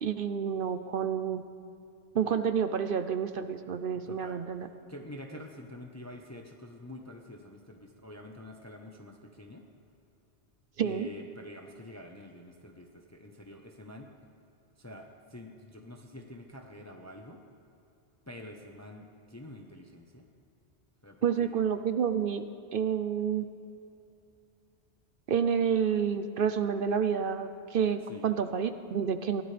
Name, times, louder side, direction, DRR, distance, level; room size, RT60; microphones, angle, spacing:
voice 1, 0.0-1.4 2.1-4.7 10.8-11.1 21.2-22.4 22.7-23.4 25.3-29.4, right 7 dB, 60° right, 10 dB, 0.7 m, -29 dB
voice 2, 4.1-4.4 4.9-9.6 10.8-14.1 14.8-17.4 18.3-20.3 21.0-21.5 28.1-28.3, left 1 dB, 15° left, 2 dB, 0.9 m, -47 dB
21.5 x 17.0 x 3.4 m, 2.6 s
omnidirectional pair, 1.1 m